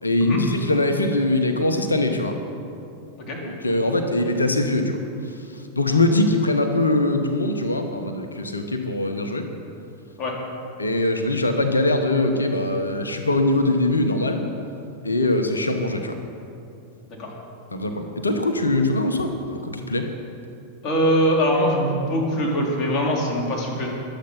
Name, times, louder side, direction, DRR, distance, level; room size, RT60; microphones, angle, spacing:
voice 1, 0.0-2.3 3.6-5.0 5.8-9.5 10.8-14.5 15.0-16.2 17.7-19.3 19.6-20.1, left 2 dB, 80° left, 6 dB, 1.2 m, -22 dB
voice 2, 20.8-23.9, equal, 35° left, -2 dB, 3.5 m, -22 dB
22.5 x 8.3 x 5.6 m, 2.6 s
figure-of-eight pair, 90°, 0 cm